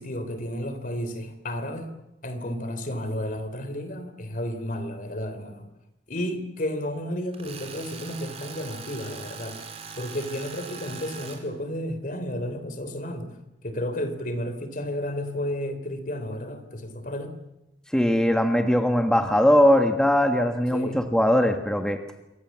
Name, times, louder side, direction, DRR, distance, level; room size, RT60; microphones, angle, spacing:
voice 1, 0.0-1.9 2.2-5.7 6.1-9.6 10.0-13.3 13.6-17.4 20.7-21.0, left 1 dB, 50° left, 10 dB, 3.5 m, -32 dB
Tools, 7.3-11.4, right 5 dB, 35° right, 4.1 m, -41 dB
voice 2, 17.9-22.0, equal, 5° left, 5 dB, 1.5 m, -20 dB
27.0 x 24.5 x 7.4 m, 0.92 s
head